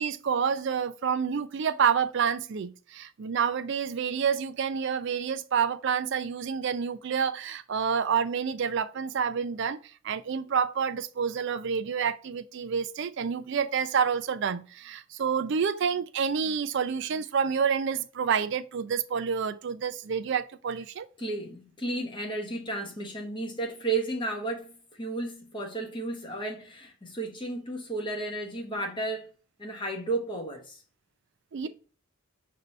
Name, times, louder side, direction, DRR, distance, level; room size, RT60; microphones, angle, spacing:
voice 1, 0.0-9.8 10.0-21.1 31.5-31.7, right 6 dB, 55° right, 0.4 m, -28 dB
voice 2, 21.2-29.3 29.6-30.8, right 2 dB, 20° left, 1.1 m, -33 dB
5.3 x 2.8 x 3.1 m
head